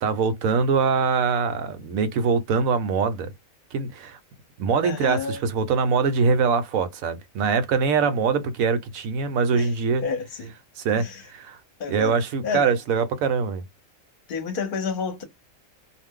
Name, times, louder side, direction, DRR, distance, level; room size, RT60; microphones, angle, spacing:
voice 1, 0.0-3.3 3.7-4.2 4.6-10.0 10.8-11.6 11.9-13.6, right 5 dB, 80° right, 1.0 m, -23 dB
voice 2, 4.8-5.4 9.6-9.7 10.0-10.5 10.9-11.2 11.8-12.2 12.4-12.7 14.3-15.2, left 5 dB, 45° left, 0.8 m, -29 dB
2.5 x 2.0 x 3.5 m
omnidirectional pair, 1.4 m